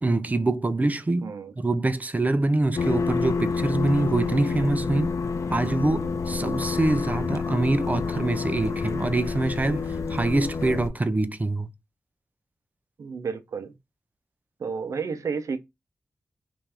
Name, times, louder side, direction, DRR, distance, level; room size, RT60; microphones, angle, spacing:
voice 1, 0.0-5.2 5.5-11.7, right 2 dB, 30° right, 0.5 m, -25 dB
voice 2, 1.2-1.5 13.0-13.7 14.6-15.6, right 5 dB, 80° right, 0.6 m, -31 dB
sound 1, 2.8-10.9, left 4 dB, 70° left, 0.5 m, -28 dB
5.4 x 2.6 x 3.4 m
cardioid pair, 65°, 5 cm